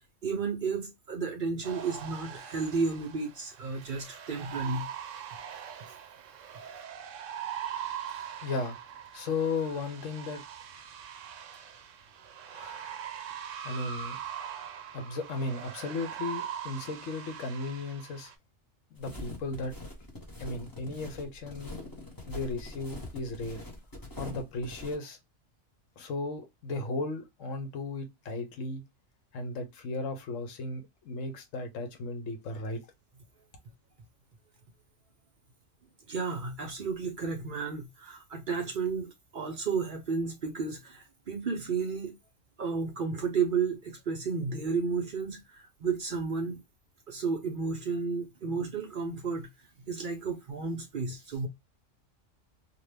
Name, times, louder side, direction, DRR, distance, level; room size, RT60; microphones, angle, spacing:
voice 1, 0.2-4.9 36.1-42.1 42.6-46.6 47.1-49.5 49.9-51.5, right 5 dB, 55° right, 0.6 m, -32 dB
sound 1, 1.6-18.3, right 9 dB, 80° right, 0.9 m, -42 dB
voice 2, 8.1-8.8 9.1-10.4 12.5-13.2 13.6-14.2 14.9-18.3 18.9-19.7 20.4-21.9 22.3-23.6 24.2-25.2 26.0-28.8 29.3-32.8, left 3 dB, 85° left, 1.1 m, -35 dB
sound 2, 19.0-25.0, left 1 dB, 20° left, 0.8 m, -43 dB
2.8 x 2.2 x 3.2 m
omnidirectional pair, 1.3 m